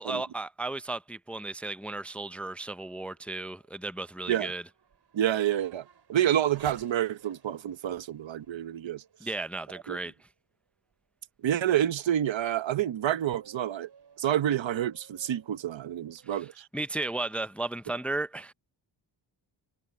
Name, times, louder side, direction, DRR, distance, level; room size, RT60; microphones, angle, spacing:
voice 1, 0.0-4.6 9.2-10.1 16.2-16.5 16.7-18.5, right 2 dB, 5° left, 0.4 m, -34 dB
Race car auto racing / Accelerating revving vroom, 2.6-10.3 10.9-11.0 11.6-16.4, right 7 dB, 65° right, 6.5 m, -57 dB
voice 2, 5.1-9.0 9.9-10.0 11.4-13.9 14.2-16.7, right 11 dB, 85° right, 1.0 m, -28 dB
wide cardioid pair, 120°, 45 cm